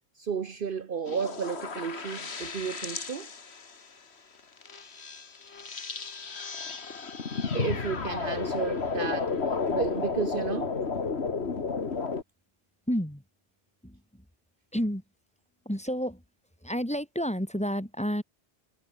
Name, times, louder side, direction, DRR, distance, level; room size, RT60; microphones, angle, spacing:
voice 1, 0.2-3.3 7.5-9.4 9.7-10.8, right 6 dB, 55° right, 1.1 m, -33 dB
sound 1, 1.1-3.7 4.6-12.2, left 5 dB, 80° left, 2.1 m, -32 dB
voice 2, 11.5-11.8 12.9-13.2 13.8-14.2 14.7-15.0 15.6-16.2 16.6-18.2, equal, 5° left, 2.8 m, -31 dB
omnidirectional pair, 1.1 m